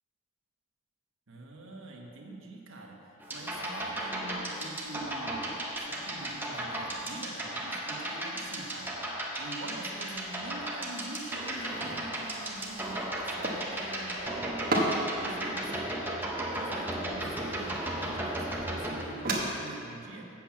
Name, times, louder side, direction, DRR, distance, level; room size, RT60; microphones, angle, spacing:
voice 1, 1.3-3.0 3.3-16.0 16.7-20.3, right 2 dB, 75° right, -1 dB, 1.2 m, -45 dB
sound 1, 3.2-19.0, right 1 dB, 10° right, 0.8 m, -35 dB
sound 2, 11.2-19.4, right 1 dB, 45° right, 1.1 m, -37 dB
7.7 x 5.9 x 7.4 m, 2.8 s
head